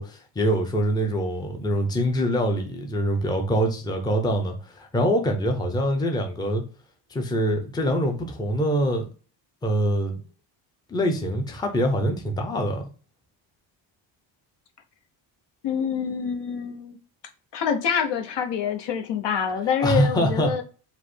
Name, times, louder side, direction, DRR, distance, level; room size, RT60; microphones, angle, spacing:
voice 1, 0.0-6.6 7.1-9.1 9.6-10.2 10.9-12.8 19.8-20.5, equal, 10° left, 0.6 m, -24 dB
voice 2, 15.6-17.0 17.5-20.6, left 7 dB, 65° left, 0.9 m, -26 dB
5.2 x 2.0 x 4.2 m
cardioid pair, 135°, 46 cm